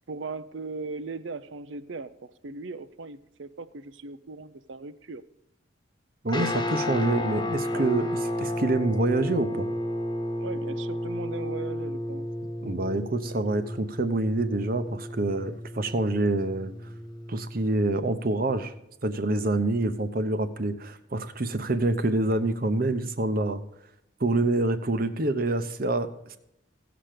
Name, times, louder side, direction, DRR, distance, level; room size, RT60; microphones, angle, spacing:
voice 1, 0.1-5.2 7.7-7.9 10.4-12.3 13.3-13.4, right 4 dB, 75° right, 14 dB, 0.6 m, -38 dB
voice 2, 6.2-8.1 8.4-9.7 12.6-16.7 17.3-18.7 19.0-23.6 24.2-26.4, right 2 dB, 50° right, 11 dB, 0.8 m, -26 dB
Guitar, 6.3-17.7, left 1 dB, 25° left, 1.4 m, -32 dB
16.5 x 6.0 x 5.0 m, 0.80 s
head